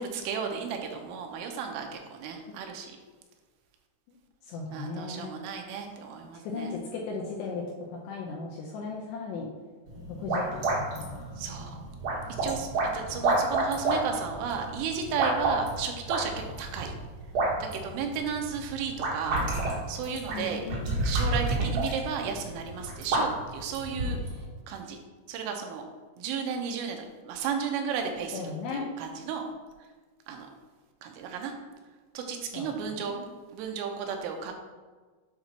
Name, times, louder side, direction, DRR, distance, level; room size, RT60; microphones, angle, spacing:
voice 1, 0.0-2.9 4.7-6.7 11.4-11.8 12.4-16.9 17.7-19.4 19.9-20.6 21.0-24.2 24.7-25.0 25.3-25.8 26.2-28.4 28.7-29.4 30.3-30.5 31.0-31.5 32.1-33.1 33.5-34.5, right 6 dB, 90° right, 3 dB, 3.2 m, -34 dB
voice 2, 4.5-5.3 6.4-7.6 8.1-9.5 10.2-10.4 10.8-11.3 20.3-20.8 28.3-28.9 32.5-33.3, left 4 dB, 80° left, -2 dB, 2.5 m, -36 dB
sound 1, 9.9-24.4, right 2 dB, 55° right, 2.8 m, -30 dB
8.5 x 2.9 x 5.8 m, 1.4 s
omnidirectional pair, 5.6 m